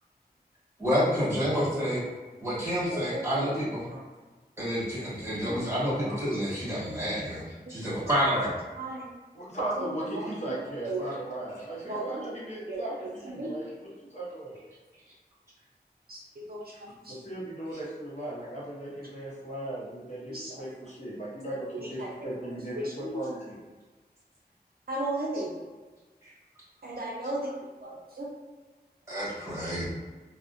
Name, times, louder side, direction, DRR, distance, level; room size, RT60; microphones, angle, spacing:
voice 1, 0.8-2.0 2.4-3.8 4.6-8.5 26.2-26.3 29.1-29.9, equal, 15° right, -10 dB, 1.4 m, -29 dB
voice 2, 2.9-4.0 5.4-6.2 6.8-6.9 8.0-8.5 8.8-9.1 9.8-9.9 10.1-10.5 10.8-11.1 11.8-12.2 12.7-13.5 16.1-17.2 20.3-20.6 21.7-22.5 22.7-23.2 24.9-25.5 26.8-27.5 27.8-28.3, right 1 dB, 65° right, -3 dB, 0.5 m, -36 dB
voice 3, 9.3-13.7 14.1-14.6 17.0-23.6, right 1 dB, 45° left, -6 dB, 0.7 m, -37 dB
2.3 x 2.1 x 2.5 m, 1.3 s
wide cardioid pair, 55°, 17 cm